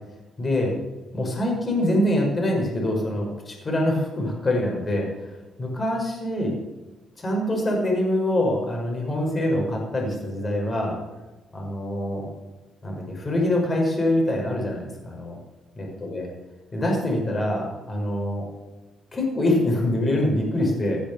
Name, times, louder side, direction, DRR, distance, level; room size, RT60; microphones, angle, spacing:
voice 1, 0.4-0.7 1.1-5.1 5.6-6.5 7.2-11.0 11.5-12.3 12.8-15.3 15.8-16.3 16.7-18.4 19.1-21.0, left 1 dB, 30° left, 0 dB, 5.6 m, -24 dB
17.0 x 8.5 x 7.0 m, 1.1 s
cardioid pair, 90°, 0 cm